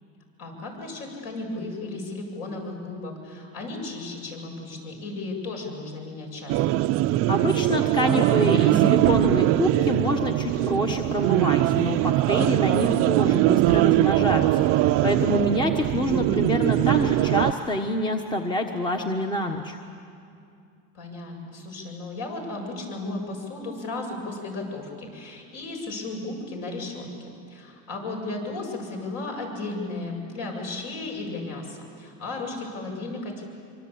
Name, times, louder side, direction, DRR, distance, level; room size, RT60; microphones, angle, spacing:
voice 1, 0.4-6.8 15.9-16.3 20.9-33.4, left 2 dB, 60° left, 2 dB, 7.7 m, -35 dB
sound 1, 6.5-17.5, right 15 dB, 50° right, 0.6 m, -21 dB
voice 2, 7.3-19.8, left 1 dB, 15° left, 4 dB, 1.3 m, -26 dB
25.5 x 25.0 x 8.7 m, 2.5 s
cardioid pair, 140°, 29 cm